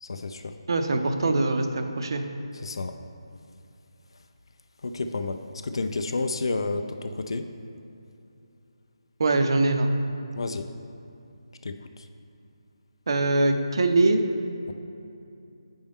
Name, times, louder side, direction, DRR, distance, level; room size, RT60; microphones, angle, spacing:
voice 1, 0.0-0.5 2.5-2.9 4.9-5.4 5.6-7.4 10.4-10.7 11.6-11.7, left 3 dB, 60° left, 7 dB, 0.4 m, -30 dB
voice 2, 0.7-2.2 9.2-9.9 13.1-14.2, right 2 dB, 50° right, 6 dB, 0.6 m, -22 dB
8.0 x 5.3 x 3.5 m, 2.7 s
figure-of-eight pair, 170°, 3 cm